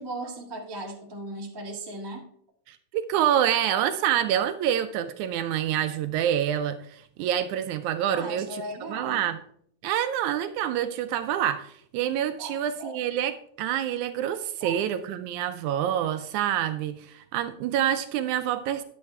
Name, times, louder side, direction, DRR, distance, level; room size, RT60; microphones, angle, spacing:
voice 1, 0.0-2.2 8.1-9.3 12.4-13.0 14.6-14.8, right 1 dB, 30° right, -1 dB, 0.4 m, -37 dB
voice 2, 2.7-9.4 9.8-18.8, right 10 dB, 80° right, 10 dB, 1.8 m, -27 dB
10.5 x 8.5 x 3.3 m, 0.64 s
omnidirectional pair, 3.7 m